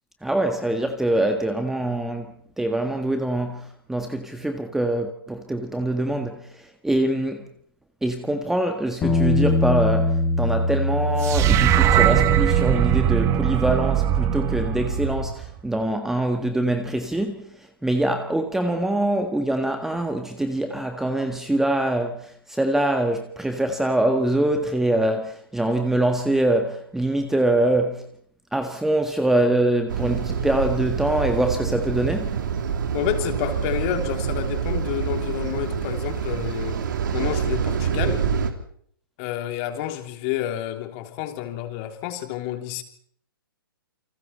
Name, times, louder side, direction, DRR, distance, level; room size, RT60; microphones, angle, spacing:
voice 1, 0.2-7.5 8.0-28.0 28.5-32.4, right 1 dB, 5° right, 1.6 m, -24 dB
Bass guitar, 9.0-15.3, left 2 dB, 20° left, 5.2 m, -24 dB
sound 1, 11.2-15.6, right 12 dB, 25° right, 1.4 m, -20 dB
sound 2, 29.9-38.5, right 7 dB, 60° right, 3.3 m, -26 dB
voice 2, 32.9-36.8 37.1-38.3 39.2-42.8, left 12 dB, 35° left, 3.3 m, -29 dB
29.0 x 26.0 x 4.4 m
figure-of-eight pair, 125°, 12 cm